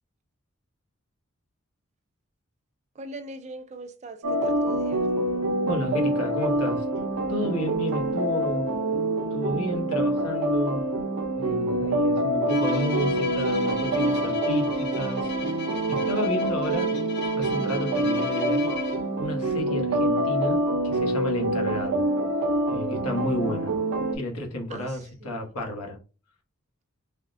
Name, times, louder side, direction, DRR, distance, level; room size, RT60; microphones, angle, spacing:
voice 1, 3.0-5.1 24.7-25.5, right 2 dB, 30° right, 0.3 m, -41 dB
sound 1, 4.2-24.2, right 1 dB, 85° right, 0.6 m, -26 dB
voice 2, 5.7-6.8 7.3-8.7 9.3-10.9 11.4-15.3 15.9-16.9 17.3-18.7 19.2-22.0 22.7-23.8 24.1-26.0, left 1 dB, 85° left, 0.9 m, -31 dB
Bowed string instrument, 12.5-19.2, left 2 dB, 50° left, 0.6 m, -35 dB
3.4 x 2.1 x 2.5 m
head